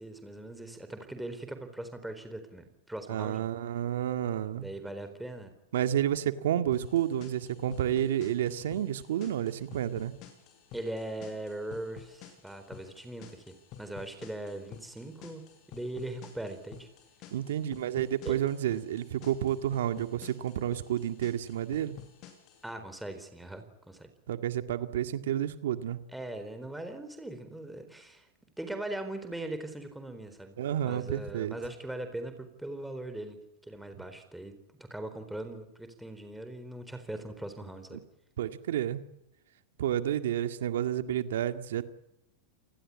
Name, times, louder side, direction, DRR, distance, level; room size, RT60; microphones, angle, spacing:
voice 1, 0.0-3.5 4.5-5.5 10.7-15.4 15.7-16.9 18.2-18.4 22.6-24.1 26.1-28.3 28.6-30.6 30.8-33.4 33.6-38.0, right 1 dB, 5° right, 8 dB, 4.1 m, -40 dB
voice 2, 3.1-4.7 5.7-10.1 17.3-22.0 24.3-26.0 30.6-31.6 38.4-39.0 39.8-41.8, right 11 dB, 80° right, 9 dB, 1.9 m, -30 dB
sound 1, 6.7-22.7, left 10 dB, 45° left, 7.7 m, -51 dB
28.5 x 20.5 x 8.6 m, 0.86 s
supercardioid pair, 125°, 0 cm